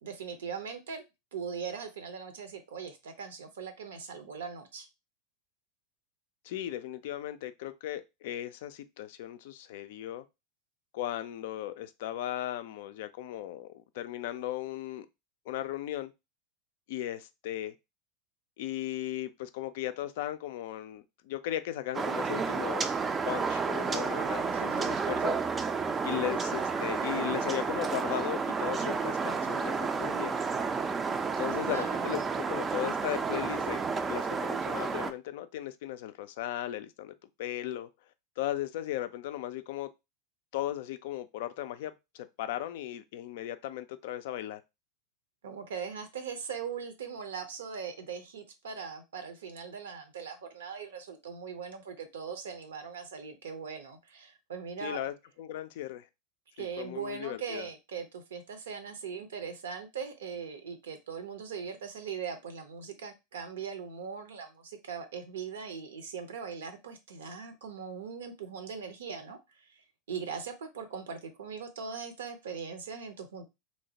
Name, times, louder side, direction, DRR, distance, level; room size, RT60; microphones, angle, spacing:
voice 1, 0.0-1.0 1.3-4.9 24.5-25.0 31.4-32.1 45.4-55.0 56.5-73.4, right 6 dB, 70° right, 0.6 m, -40 dB
voice 2, 6.4-10.2 10.9-15.1 15.5-16.1 16.9-17.7 18.6-22.9 23.3-25.4 26.0-30.4 31.4-32.2 32.5-33.8 34.1-37.1 37.4-37.9 38.4-39.9 40.5-44.6 54.8-56.1 56.6-57.7, left 13 dB, 60° left, 0.3 m, -37 dB
sound 1, 21.9-35.1, right 5 dB, 20° right, 0.3 m, -31 dB
3.0 x 2.1 x 2.7 m
figure-of-eight pair, 90°, 0 cm